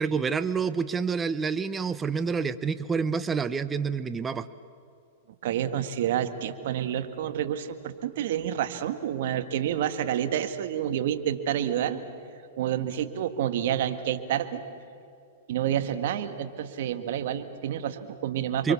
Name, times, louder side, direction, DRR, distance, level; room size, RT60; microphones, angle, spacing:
voice 1, 0.0-4.5 18.6-18.7, right 5 dB, 15° right, 13 dB, 0.7 m, -28 dB
voice 2, 5.4-12.0 12.6-14.6 15.5-18.7, right 10 dB, 65° right, 9 dB, 1.9 m, -29 dB
29.0 x 24.0 x 7.2 m, 2.5 s
hypercardioid pair, 130°, 0 cm